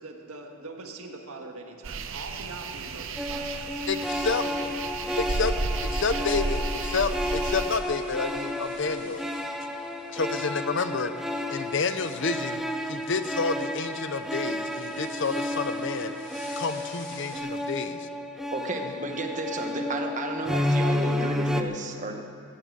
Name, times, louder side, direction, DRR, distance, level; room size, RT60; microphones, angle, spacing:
voice 1, 0.0-3.8 4.2-4.5, right 2 dB, 85° right, 3 dB, 1.6 m, -42 dB
sound 1, 1.8-7.8, right 3 dB, 60° right, 0.7 m, -32 dB
sound 2, 3.2-21.6, left 1 dB, ahead, 0.5 m, -31 dB
voice 2, 3.9-4.4 5.2-5.6 5.8-9.2 10.1-11.1 11.5-12.6 12.9-16.1 16.6-18.1, left 4 dB, 55° left, 11 dB, 0.6 m, -29 dB
sound 3, 6.2-17.4, left 2 dB, 40° left, 3.5 m, -49 dB
voice 3, 18.5-22.1, right 2 dB, 35° right, 4 dB, 1.2 m, -32 dB
15.0 x 9.0 x 7.5 m, 2.6 s
head